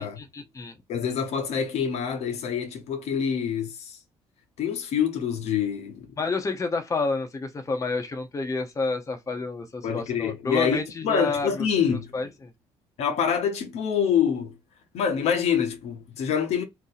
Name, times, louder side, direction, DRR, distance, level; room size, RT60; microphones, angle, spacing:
voice 1, 0.0-0.7 6.2-11.7 12.1-12.5, left 3 dB, 30° left, 0.8 m, -29 dB
voice 2, 0.9-4.0 4.6-6.1 9.8-12.1 13.0-14.5 14.9-16.6, left 7 dB, 75° left, 0.8 m, -26 dB
2.7 x 2.0 x 3.9 m
supercardioid pair, 75°, 11 cm